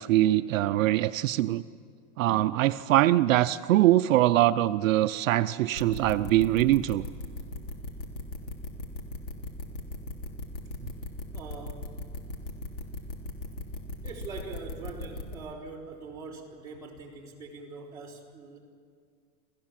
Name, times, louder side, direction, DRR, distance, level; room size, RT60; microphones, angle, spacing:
voice 1, 0.0-1.6 2.2-7.0, right 14 dB, 70° right, 11 dB, 0.6 m, -23 dB
sound 1, 5.7-15.3, left 2 dB, 55° left, 3.2 m, -37 dB
voice 2, 11.3-11.8 14.0-18.6, right 4 dB, 10° right, -6 dB, 4.0 m, -43 dB
28.0 x 15.5 x 7.5 m, 2.1 s
supercardioid pair, 165°, 41 cm